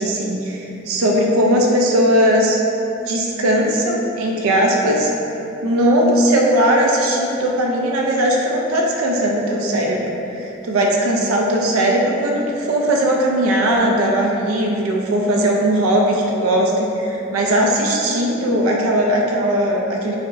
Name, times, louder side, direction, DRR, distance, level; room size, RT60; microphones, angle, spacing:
voice 1, 0.0-2.6 3.1-5.1 5.6-20.2, right 1 dB, 90° right, -1 dB, 0.4 m, -18 dB
4.8 x 2.0 x 2.5 m, 2.9 s
head